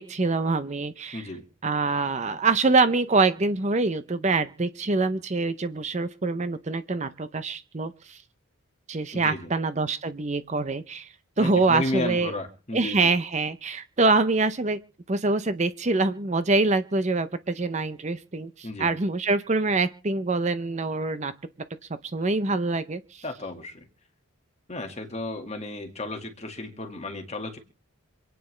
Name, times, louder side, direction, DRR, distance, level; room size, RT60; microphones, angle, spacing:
voice 1, 0.0-1.3 1.6-8.2 8.9-11.1 11.4-12.3 12.7-14.8 15.1-21.3 22.1-23.0, right 3 dB, 35° right, 12 dB, 0.6 m, -25 dB
voice 2, 1.1-1.4 9.1-9.5 11.4-13.1 18.6-18.9 23.2-23.9 24.7-27.6, left 2 dB, 30° left, 5 dB, 1.9 m, -33 dB
26.5 x 9.3 x 3.3 m, 0.36 s
head